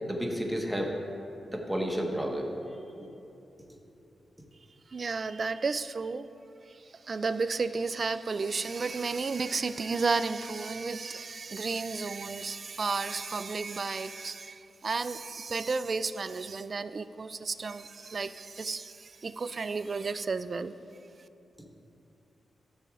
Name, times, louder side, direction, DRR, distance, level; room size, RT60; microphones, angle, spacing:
voice 1, 0.1-0.9 1.5-2.5 2.9-3.1 21.6-21.7, equal, 5° right, 0 dB, 1.4 m, -31 dB
voice 2, 4.9-6.3 6.7-20.8, right 4 dB, 50° right, 13 dB, 0.3 m, -33 dB
13.5 x 6.7 x 2.5 m, 2.8 s
supercardioid pair, 50°, 0 cm